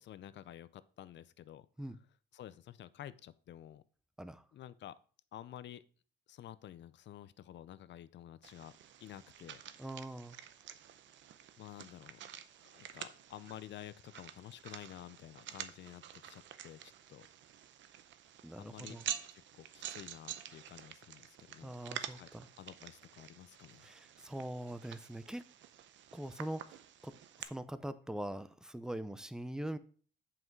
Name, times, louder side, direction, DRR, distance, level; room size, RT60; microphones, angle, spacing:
voice 1, 0.0-1.7 2.3-3.8 4.5-4.9 5.3-5.8 6.3-8.7 9.0-9.6 11.6-12.2 12.7-17.3 18.6-19.0 19.3-22.3 22.6-23.9, left 11 dB, 65° left, 0.6 m, -51 dB
sound 1, 8.4-27.4, right 10 dB, 70° right, 0.7 m, -48 dB
voice 2, 9.8-10.4 18.4-19.0 21.6-22.5 23.8-25.5 26.1-29.8, right 1 dB, 5° right, 0.7 m, -43 dB
7.8 x 5.8 x 4.6 m
cardioid pair, 90°, 20 cm